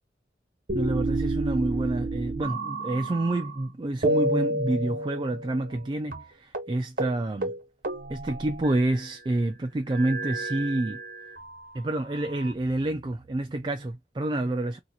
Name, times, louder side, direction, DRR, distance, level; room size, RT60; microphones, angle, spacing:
voice 1, 0.7-7.5 8.1-11.0 11.7-14.8, right 2 dB, 25° right, 0.3 m, -28 dB
sound 1, 0.7-3.6 4.0-5.9 6.1-6.2 6.5-6.7 7.0-7.2 7.4-9.1 9.9-11.5 12.2-13.1, right 2 dB, 50° right, 1.1 m, -30 dB
2.9 x 2.4 x 3.9 m
head